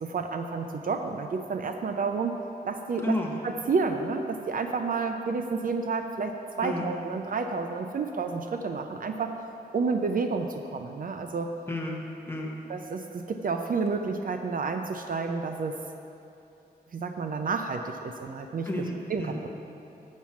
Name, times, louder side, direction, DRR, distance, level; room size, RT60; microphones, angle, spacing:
voice 1, 0.0-2.4 2.6-3.2 3.4-9.3 9.7-11.5 12.7-15.8 16.9-18.7 19.1-19.5, right 4 dB, 55° right, 5 dB, 0.5 m, -30 dB
voice 2, 3.0-3.3 6.6-6.9 11.7-12.0 12.3-12.6 18.6-19.4, left 1 dB, 15° left, -1 dB, 1.2 m, -31 dB
7.4 x 6.1 x 7.1 m, 2.8 s
wide cardioid pair, 140°, 17 cm